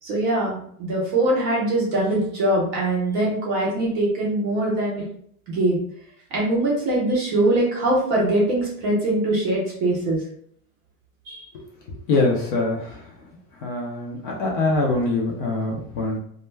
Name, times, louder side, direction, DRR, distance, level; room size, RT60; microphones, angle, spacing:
voice 1, 0.0-5.0 5.5-5.8 6.3-10.2 11.3-11.4, right 1 dB, 25° right, -4 dB, 0.5 m, -22 dB
voice 2, 12.1-13.0 13.6-16.2, left 2 dB, 40° left, -1 dB, 0.4 m, -23 dB
2.2 x 2.1 x 3.1 m, 0.63 s
supercardioid pair, 165°, 42 cm